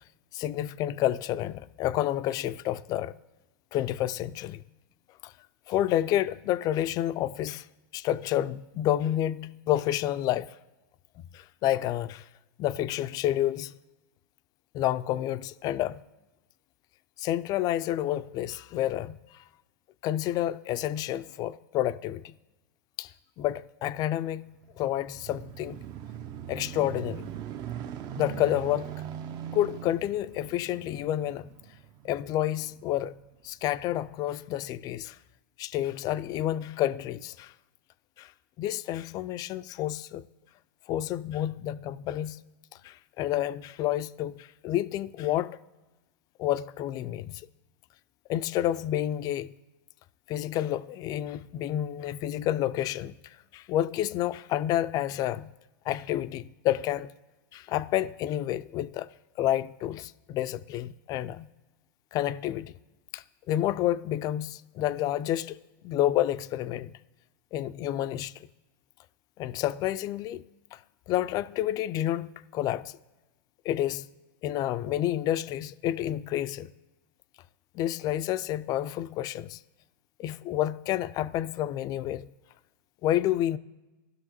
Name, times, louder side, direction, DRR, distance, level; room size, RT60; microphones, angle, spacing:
voice 1, 0.3-3.1 3.7-4.6 5.2-5.3 5.7-7.7 7.9-10.6 11.3-12.2 12.6-13.7 14.7-16.0 17.2-19.4 20.0-22.3 23.0-23.1 23.4-24.4 24.8-25.8 26.5-27.2 28.2-28.9 29.5-31.5 32.0-33.1 33.4-35.2 35.6-37.5 38.2-38.3 38.6-40.2 40.9-42.4 42.8-45.6 46.4-47.4 48.3-49.5 50.3-55.5 55.9-57.1 57.5-59.1 59.4-61.5 62.1-62.7 63.1-65.6 65.8-66.9 67.5-68.3 69.4-70.4 70.7-70.8 71.1-72.9 73.7-74.1 74.4-76.7 77.7-79.6 80.2-82.3 83.0-83.6, left 13 dB, 35° left, 0.3 m, -29 dB
sound 1, 24.5-33.3 34.0-34.1, right 10 dB, 35° right, 0.5 m, -41 dB
18.0 x 6.2 x 3.0 m
hypercardioid pair, 120°, 11 cm